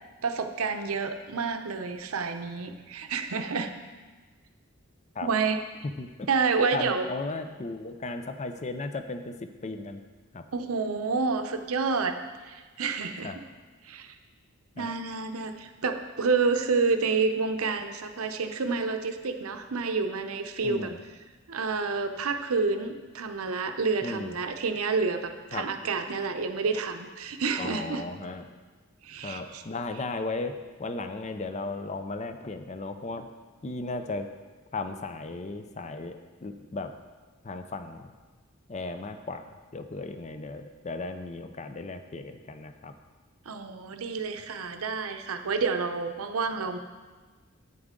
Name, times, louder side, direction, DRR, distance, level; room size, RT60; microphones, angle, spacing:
voice 1, 0.2-3.7 5.2-5.6 6.3-7.1 10.5-12.2 12.4-13.4 13.8-14.1 14.8-20.9 21.5-28.0 29.0-29.6 43.5-46.8, right 4 dB, 80° right, 7 dB, 0.7 m, -29 dB
voice 2, 6.7-10.0 10.3-10.4 13.2-13.4 14.8-14.9 20.6-21.0 24.0-24.4 25.5-25.6 27.6-28.4 29.2-30.5 30.8-33.3 33.6-34.3 34.7-36.9 37.4-38.1 38.7-39.4 39.7-42.9, left 3 dB, 30° left, 8 dB, 0.5 m, -35 dB
9.8 x 9.0 x 3.7 m, 1.3 s
head